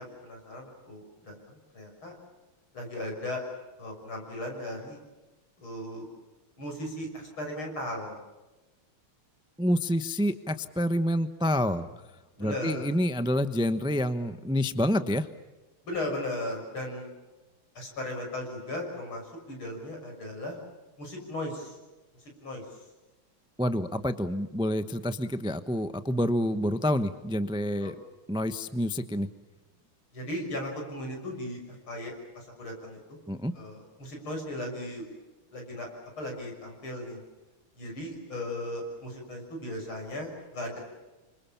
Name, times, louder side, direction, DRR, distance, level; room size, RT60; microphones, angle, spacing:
voice 1, 0.0-2.1 2.7-3.4 3.8-5.0 5.6-6.1 6.6-8.2 12.4-12.9 15.8-17.1 17.8-20.6 21.0-21.8 22.4-22.6 27.8-27.9 30.1-33.0 33.5-35.1 35.5-35.9 36.2-37.2 37.8-40.8, left 1 dB, 75° left, 2 dB, 7.3 m, -37 dB
voice 2, 9.6-11.9 12.4-15.3 23.6-27.9 28.3-29.3 33.3-33.5, equal, 5° right, 10 dB, 0.4 m, -28 dB
29.0 x 26.0 x 7.2 m, 1.1 s
omnidirectional pair, 2.3 m